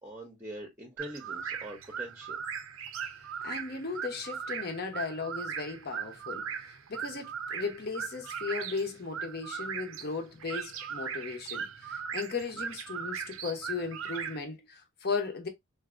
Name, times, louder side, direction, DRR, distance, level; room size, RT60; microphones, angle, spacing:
voice 1, 0.0-2.4, right 1 dB, 10° right, 0.7 m, -43 dB
sound 1, 1.0-14.4, right 7 dB, 75° right, 0.5 m, -38 dB
voice 2, 3.4-15.5, left 4 dB, 45° left, 0.8 m, -36 dB
3.4 x 2.6 x 2.4 m
head